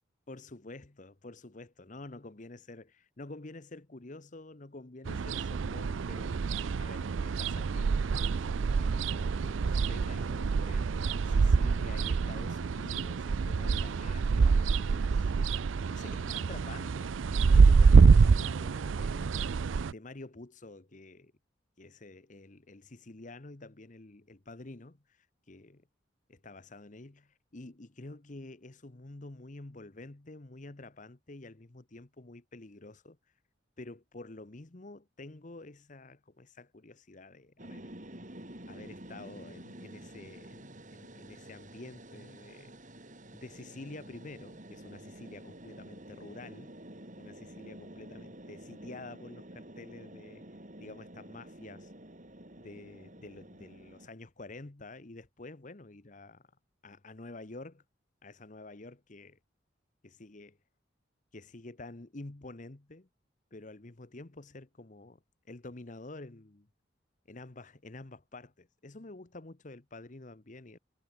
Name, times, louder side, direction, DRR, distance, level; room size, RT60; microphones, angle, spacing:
voice 1, 0.3-15.3 15.9-19.4 19.8-21.3 21.8-25.8 26.3-33.2 33.8-37.9 38.7-42.8 43.3-46.8 47.2-50.4 50.8-51.9 52.6-56.4 56.8-57.8 58.2-59.4 60.0-60.6 61.3-63.1 63.5-65.2 65.5-66.7 67.3-70.8, left 2 dB, 40° left, 1.1 m, -49 dB
sound 1, 5.1-19.9, right 5 dB, 90° right, 0.5 m, -26 dB
sound 2, 37.6-54.1, right 1 dB, 40° right, 4.8 m, -49 dB
head